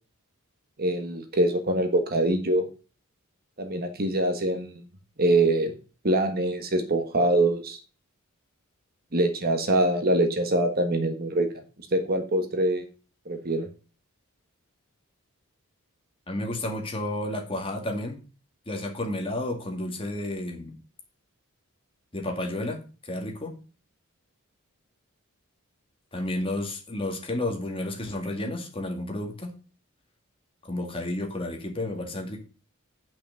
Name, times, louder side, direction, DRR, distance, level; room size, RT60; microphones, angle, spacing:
voice 1, 0.8-2.7 3.6-4.7 5.2-5.7 6.0-7.8 9.1-11.5 11.9-12.8 13.2-13.7, right 1 dB, 45° right, 6 dB, 1.4 m, -24 dB
voice 2, 16.3-18.2 18.7-20.7 22.1-23.6 26.1-29.5 30.6-32.4, left 1 dB, 25° left, 2 dB, 2.2 m, -31 dB
8.5 x 6.0 x 6.5 m, 0.35 s
head